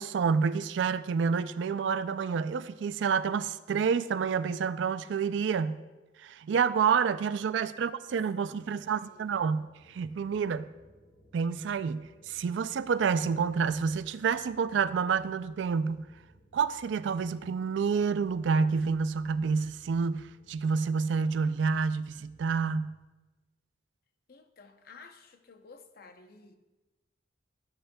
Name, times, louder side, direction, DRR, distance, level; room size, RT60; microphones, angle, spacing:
voice 1, 0.0-5.8 6.2-10.7 11.3-16.1 16.5-23.0, right 6 dB, 75° right, 15 dB, 0.3 m, -28 dB
sound 1, 8.0-22.9, equal, 35° left, 1.5 m, -61 dB
voice 2, 8.3-9.6 24.3-26.6, left 4 dB, 55° left, 7 dB, 0.7 m, -54 dB
13.5 x 7.9 x 2.2 m, 1.2 s
head